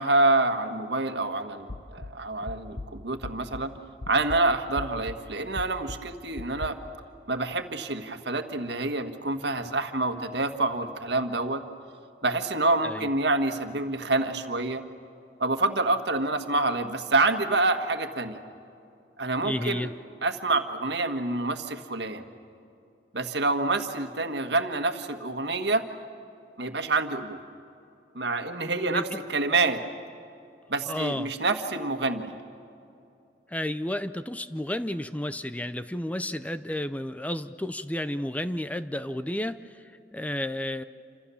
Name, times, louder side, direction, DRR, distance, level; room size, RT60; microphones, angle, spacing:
voice 1, 0.0-3.7 4.1-6.8 7.3-11.6 12.2-14.8 15.4-18.4 19.2-19.9 20.2-22.2 23.1-25.9 26.6-27.4 28.2-29.8 30.7-32.3, right 2 dB, 75° right, 7 dB, 1.7 m, -27 dB
sound 1, 1.7-3.8 4.0-6.7, left 2 dB, 55° left, 1.1 m, -39 dB
voice 2, 19.4-19.9 28.9-29.0 30.9-31.3 33.5-39.7 40.1-40.8, left 1 dB, 10° left, 12 dB, 0.5 m, -31 dB
28.0 x 27.0 x 7.1 m, 2.7 s
head